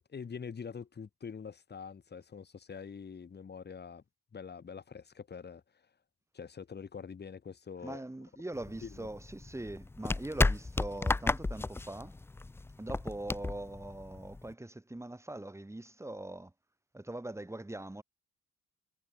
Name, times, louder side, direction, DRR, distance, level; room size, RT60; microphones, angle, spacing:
voice 1, 0.0-4.0 4.3-5.6 6.3-8.0 8.8-9.1, left 6 dB, 35° left, 1.7 m, -45 dB
voice 2, 7.8-12.2 12.8-16.5 16.9-18.0, right 1 dB, 10° right, 2.2 m, -42 dB
sound 1, 8.6-14.5, left 3 dB, 10° left, 0.3 m, -33 dB
cardioid pair, 90°, 30 cm